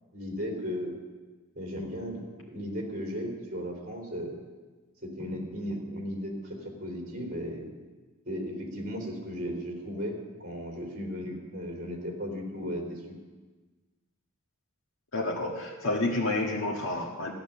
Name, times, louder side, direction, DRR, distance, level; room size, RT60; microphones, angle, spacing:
voice 1, 0.1-0.9 1.6-4.4 5.0-7.7 8.3-13.0, equal, 45° right, 0 dB, 3.6 m, -36 dB
voice 2, 15.1-17.3, left 2 dB, 70° left, -3 dB, 1.7 m, -29 dB
14.5 x 11.0 x 7.0 m, 1.3 s
head